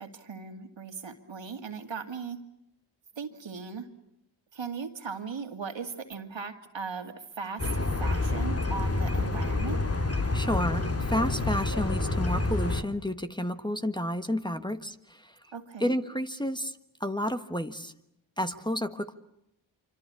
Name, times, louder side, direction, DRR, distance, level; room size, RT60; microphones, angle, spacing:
voice 1, 0.0-2.4 3.2-3.9 4.5-7.7 8.0-9.8 15.5-15.9, right 5 dB, 65° right, 6 dB, 2.6 m, -38 dB
sound 1, 7.6-12.8, left 2 dB, 30° left, 2.1 m, -28 dB
voice 2, 10.3-15.4 15.8-17.9 18.4-19.1, left 1 dB, 10° left, 9 dB, 1.4 m, -31 dB
25.5 x 25.5 x 8.5 m, 0.81 s
cardioid pair, 50°, 48 cm